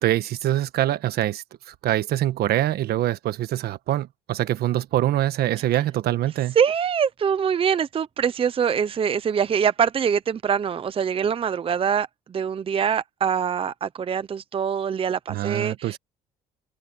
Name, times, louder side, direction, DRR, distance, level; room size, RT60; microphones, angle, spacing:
voice 1, 0.0-6.6 15.3-16.0, right 13 dB, 70° right, 1.3 m, -24 dB
voice 2, 6.5-16.0, right 7 dB, 35° right, 0.7 m, -24 dB
cardioid pair, 110°, 17 cm